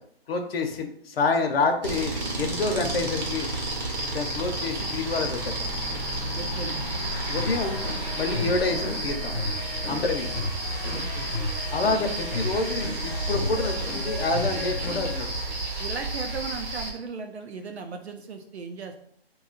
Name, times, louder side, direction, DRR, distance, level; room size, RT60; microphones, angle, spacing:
voice 1, 0.3-2.1 2.4-3.5 4.1-5.6 7.3-7.8 8.2-9.3 9.9-10.3 11.7-15.6, left 3 dB, 65° left, 5 dB, 0.7 m, -27 dB
sound 1, 1.8-16.9, right 1 dB, 45° right, 0.9 m, -31 dB
voice 2, 6.3-6.9 10.9-11.3 15.8-19.1, right 5 dB, 80° right, 6 dB, 0.7 m, -37 dB
sound 2, 7.4-15.2, left 2 dB, 25° left, 0.6 m, -34 dB
2.8 x 2.3 x 3.8 m, 0.65 s
hypercardioid pair, 170°, 32 cm